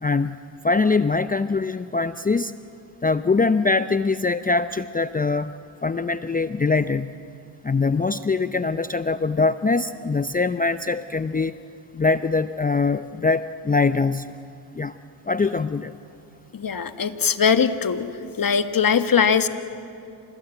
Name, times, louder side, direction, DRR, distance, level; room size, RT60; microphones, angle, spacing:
voice 1, 0.0-2.5 3.0-5.5 5.8-7.1 7.6-11.6 11.9-14.3 14.7-14.9 15.3-15.9, left 4 dB, 20° left, 13 dB, 0.6 m, -23 dB
voice 2, 16.5-18.1 18.4-19.5, left 6 dB, 40° left, 10 dB, 1.6 m, -20 dB
27.0 x 19.0 x 9.1 m, 2.5 s
hypercardioid pair, 45°, 49 cm